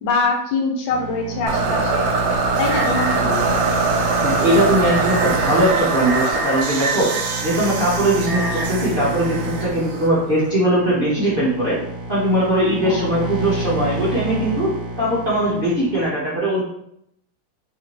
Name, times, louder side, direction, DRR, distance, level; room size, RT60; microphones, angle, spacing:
voice 1, 0.0-2.1 2.6-3.7 12.7-13.1, left 3 dB, 80° left, 2 dB, 1.4 m, -24 dB
sound 1, 0.9-16.1, right 1 dB, 65° right, 1.4 m, -29 dB
sound 2, 1.5-10.5, right 4 dB, 80° right, 1.3 m, -22 dB
voice 2, 4.2-7.1 7.4-11.8 12.1-14.7 15.0-16.6, right 1 dB, 40° right, -9 dB, 0.8 m, -20 dB
3.4 x 2.7 x 2.9 m, 0.74 s
omnidirectional pair, 2.1 m